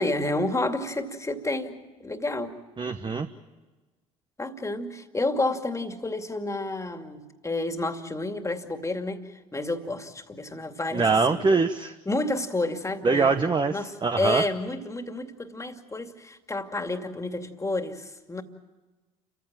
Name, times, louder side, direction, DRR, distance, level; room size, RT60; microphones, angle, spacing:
voice 1, 0.0-2.6 4.4-11.4 12.1-18.4, left 2 dB, 15° left, 7 dB, 2.4 m, -30 dB
voice 2, 2.8-3.3 10.9-11.9 13.0-14.4, right 4 dB, 25° right, 7 dB, 1.2 m, -23 dB
29.5 x 15.0 x 8.9 m, 1.2 s
hypercardioid pair, 65°, 18 cm